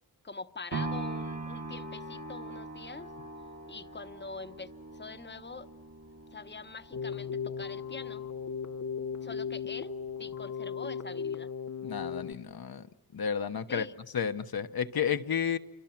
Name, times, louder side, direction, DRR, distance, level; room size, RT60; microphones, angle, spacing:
voice 1, 0.2-3.1 3.7-5.7 6.3-8.3 9.2-11.5 13.7-13.9, left 4 dB, 30° left, 1.0 m, -44 dB
sound 1, 0.7-8.8 9.3-9.4, right 2 dB, 50° right, 2.0 m, -41 dB
Keyboard (musical), 6.9-12.3, left 6 dB, 55° left, 0.8 m, -37 dB
voice 2, 11.8-12.9 13.1-13.9 14.1-15.6, left 7 dB, 70° left, 1.1 m, -31 dB
28.5 x 25.0 x 6.0 m
wide cardioid pair, 80°, 38 cm